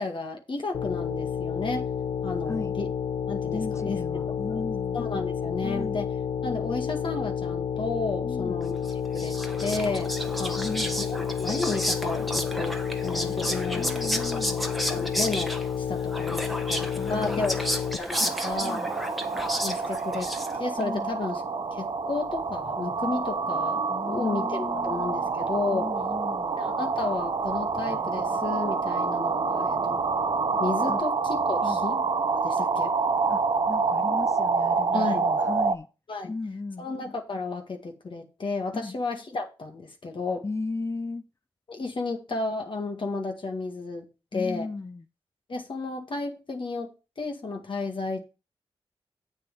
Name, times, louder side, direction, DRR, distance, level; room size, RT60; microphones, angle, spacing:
voice 1, 0.0-1.8 2.2-2.9 3.3-4.2 4.5-4.6 4.9-6.1 6.4-8.8 9.1-10.1 10.4-10.6 11.0-17.7 18.0-18.8 19.6-21.4 21.7-25.9 26.6-30.1 30.6-32.0 32.4-32.9 34.9-35.3 36.1-36.3 36.8-40.4 41.7-44.7 45.5-48.2, left 3 dB, 55° left, 1.8 m, -33 dB
sound 1, 0.7-18.0, left 7 dB, 80° left, 0.7 m, -30 dB
voice 2, 3.5-5.0 5.6-6.0 8.2-8.6 10.5-11.0 13.7-14.7 17.0-17.6 18.6-18.9 20.8-21.1 23.9-25.4 25.7-26.5 30.9-31.0 31.6-31.8 33.3-35.9 36.3-36.9 38.7-39.0 40.4-41.2 44.3-45.0, left 3 dB, 30° left, 0.6 m, -36 dB
Whispering, 8.9-20.8, equal, ahead, 1.3 m, -32 dB
sound 2, 18.1-35.8, right 4 dB, 55° right, 0.9 m, -27 dB
7.7 x 6.4 x 5.3 m
cardioid pair, 50°, 10 cm